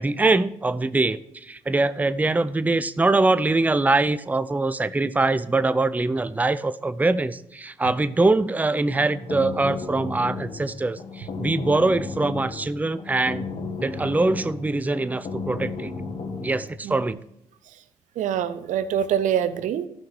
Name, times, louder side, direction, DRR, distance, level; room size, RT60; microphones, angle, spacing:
voice 1, 0.0-13.5 13.8-15.9 16.4-17.2, right 2 dB, 10° right, 14 dB, 0.5 m, -23 dB
sound 1, 9.0-16.7, left 4 dB, 60° left, 2.1 m, -34 dB
voice 2, 18.2-19.9, right 9 dB, 75° right, 13 dB, 0.7 m, -24 dB
13.0 x 5.8 x 4.6 m, 0.78 s
supercardioid pair, 60°, 13 cm